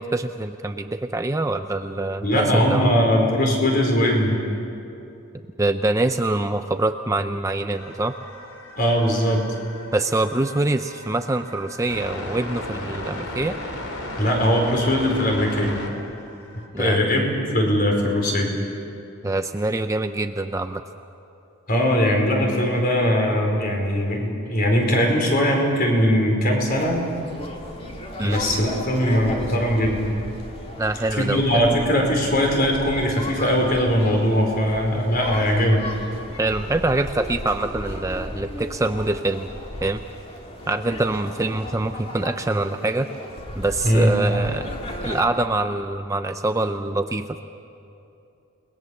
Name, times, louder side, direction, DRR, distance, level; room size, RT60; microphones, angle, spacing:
voice 1, 0.0-2.9 5.6-8.1 9.9-13.6 16.7-17.0 19.2-20.8 28.2-28.4 30.8-31.4 36.4-39.5 39.8-40.0 40.7-43.1 43.6-44.7 45.0-47.4, right 2 dB, 15° right, 8 dB, 0.5 m, -24 dB
voice 2, 2.2-4.4 8.8-9.4 14.2-15.8 16.8-18.5 21.7-27.0 28.2-30.0 31.1-35.8 43.8-44.1, equal, 45° left, 1 dB, 4.8 m, -20 dB
sound 1, 7.7-16.7, left 1 dB, 85° left, 3.3 m, -35 dB
sound 2, 26.7-45.2, left 1 dB, 30° left, 2.5 m, -35 dB
29.5 x 20.0 x 7.1 m, 2.8 s
head